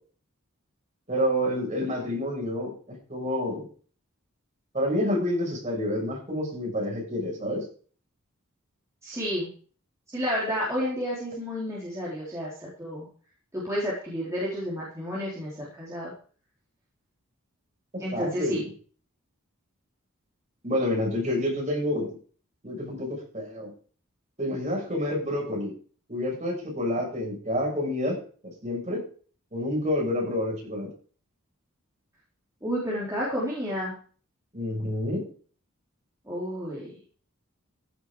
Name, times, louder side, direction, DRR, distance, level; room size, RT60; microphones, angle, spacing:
voice 1, 1.1-3.7 4.7-7.6 17.9-18.7 20.6-22.2 22.6-23.7 24.4-25.7 26.1-28.2 28.4-29.0 29.5-30.9 34.5-35.2, left 1 dB, 30° right, -2 dB, 6.8 m, -28 dB
voice 2, 9.0-9.5 10.1-13.1 13.5-16.1 18.0-18.6 32.6-33.9 36.2-36.9, equal, 15° right, -7 dB, 4.1 m, -31 dB
15.5 x 8.0 x 5.0 m, 0.42 s
head